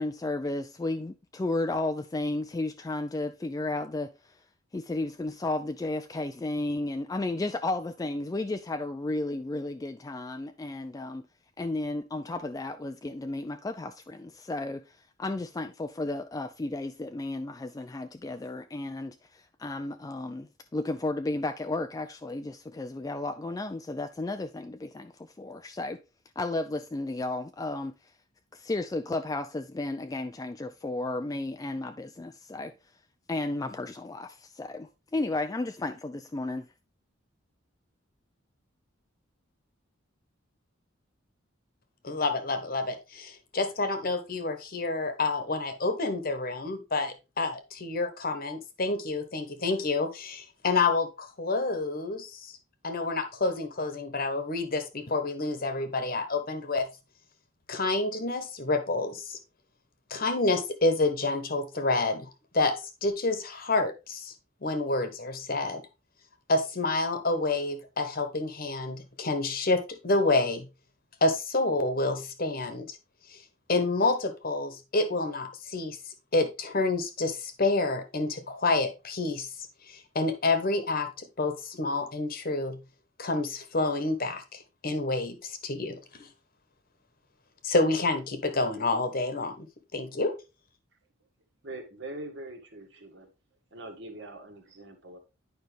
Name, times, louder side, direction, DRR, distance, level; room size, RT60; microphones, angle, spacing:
voice 1, 0.0-4.4 4.7-11.2 11.6-26.0 26.4-27.9 28.5-32.7 33.3-36.7, left 2 dB, 15° left, 0.3 m, -33 dB
voice 2, 42.0-52.5 52.8-56.9 57.7-59.4 60.1-64.3 64.6-65.8 66.5-70.7 71.2-73.0 73.3-73.4 73.7-76.0 76.3-79.5 79.9-82.8 83.2-86.3 87.6-89.7 89.9-90.4, left 3 dB, 45° left, 1.1 m, -28 dB
voice 3, 91.6-93.3 93.7-95.2, right 2 dB, 60° right, 1.7 m, -42 dB
9.3 x 5.3 x 3.3 m
head